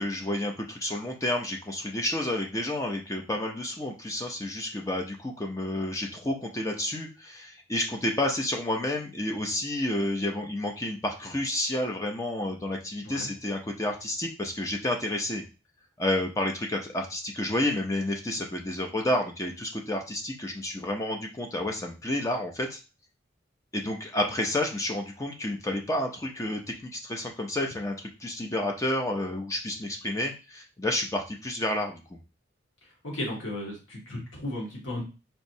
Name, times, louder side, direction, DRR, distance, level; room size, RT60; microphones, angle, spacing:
voice 1, 0.0-15.4 16.0-22.8 23.7-32.0, left 1 dB, 15° left, 1 dB, 0.5 m, -30 dB
voice 2, 33.0-35.0, left 1 dB, 90° left, -3 dB, 1.4 m, -35 dB
4.4 x 3.0 x 2.6 m, 0.31 s
head